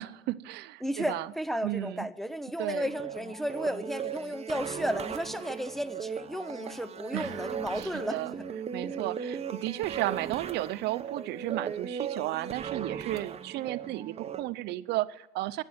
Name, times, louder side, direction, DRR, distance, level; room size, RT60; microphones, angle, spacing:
voice 1, 0.0-1.3 1.6-2.1 2.6-2.9 7.1-7.4 7.8-8.3 8.7-15.6, right 16 dB, 80° right, 16 dB, 0.6 m, -34 dB
voice 2, 0.8-8.2 8.9-9.0, equal, ahead, 10 dB, 0.8 m, -33 dB
sound 1, 2.8-14.4, right 7 dB, 40° right, 0.8 m, -38 dB
12.0 x 9.8 x 7.3 m, 0.96 s
cardioid pair, 110°, 17 cm